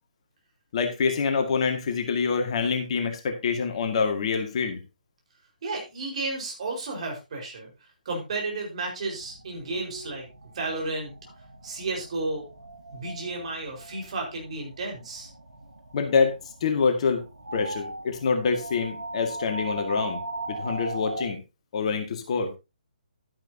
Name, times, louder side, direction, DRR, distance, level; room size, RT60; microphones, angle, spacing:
voice 1, 0.7-4.8 15.9-16.3 16.6-17.2 17.5-20.2 20.5-21.4 21.7-22.5, left 5 dB, 40° left, 5 dB, 2.0 m, -26 dB
voice 2, 5.6-7.7 8.0-10.3 10.5-11.1 11.6-12.5 12.9-15.3, right 2 dB, 45° right, 1 dB, 4.9 m, -32 dB
sound 1, 9.1-21.3, right 2 dB, 80° right, 2.0 m, -39 dB
11.0 x 10.0 x 2.9 m, 0.26 s
figure-of-eight pair, 135°, 5 cm